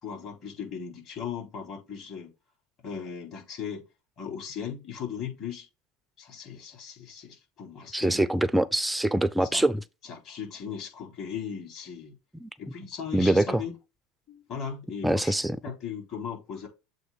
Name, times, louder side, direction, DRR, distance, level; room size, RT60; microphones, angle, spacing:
voice 1, 0.0-2.3 2.8-3.8 4.2-5.7 6.2-8.3 9.5-9.7 10.0-12.1 12.6-13.7 14.3-15.4 15.6-16.7, left 7 dB, 50° left, 4.2 m, -37 dB
voice 2, 7.9-9.8 12.4-12.5 13.1-13.6 15.0-15.6, right 1 dB, 5° right, 0.5 m, -24 dB
7.7 x 2.6 x 5.6 m
hypercardioid pair, 90°, 0 cm